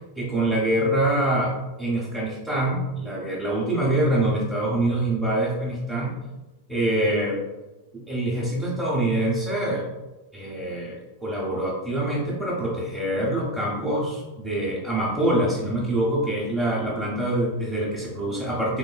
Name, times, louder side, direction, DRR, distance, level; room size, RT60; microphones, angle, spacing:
voice 1, 0.2-1.5 1.8-6.1 6.7-7.4 7.9-9.9 10.3-18.8, right 1 dB, ahead, -6 dB, 0.7 m, -25 dB
3.7 x 3.0 x 2.3 m, 1.1 s
figure-of-eight pair, 90°, 0 cm